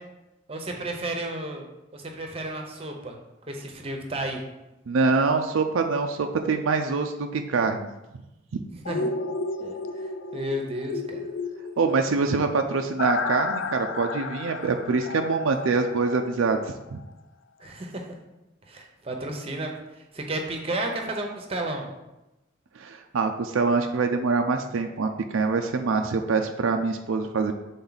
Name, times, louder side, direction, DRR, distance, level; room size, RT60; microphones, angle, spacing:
voice 1, 0.5-1.6 1.9-3.2 3.5-4.4 8.7-9.1 9.6-11.3 17.6-18.1 18.7-21.9, right 1 dB, 30° right, 2 dB, 0.8 m, -32 dB
voice 2, 4.9-7.9 8.5-8.6 11.8-17.0 22.8-27.5, right 4 dB, 85° right, 5 dB, 0.4 m, -25 dB
sound 1, 8.9-16.7 17.1-17.2, left 4 dB, 70° left, 0.4 m, -33 dB
7.1 x 3.8 x 4.0 m, 0.97 s
head